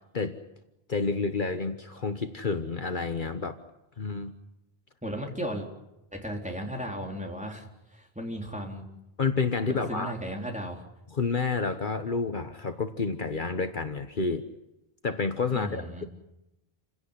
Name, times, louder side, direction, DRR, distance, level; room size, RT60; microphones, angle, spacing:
voice 1, 0.9-3.6 4.0-4.3 9.2-10.1 11.1-14.4 15.0-16.0, left 4 dB, 55° left, 8 dB, 1.3 m, -29 dB
voice 2, 5.0-5.7 6.1-7.7 7.9-8.9 9.7-10.8 15.5-16.1, equal, 5° right, 0 dB, 3.8 m, -35 dB
28.5 x 17.0 x 10.0 m, 0.93 s
omnidirectional pair, 1.0 m